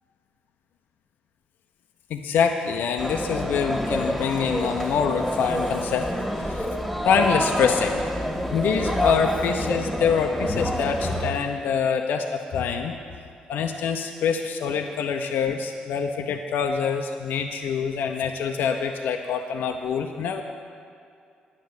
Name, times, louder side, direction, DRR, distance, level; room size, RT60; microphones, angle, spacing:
voice 1, 2.1-6.1 6.4-6.7 7.0-8.1 8.5-12.9 13.5-20.4, left 6 dB, 70° left, 4 dB, 0.6 m, -25 dB
sound 1, 3.0-11.3, equal, 5° right, 1.9 m, -28 dB
9.8 x 6.3 x 7.9 m, 2.4 s
hypercardioid pair, 45°, 3 cm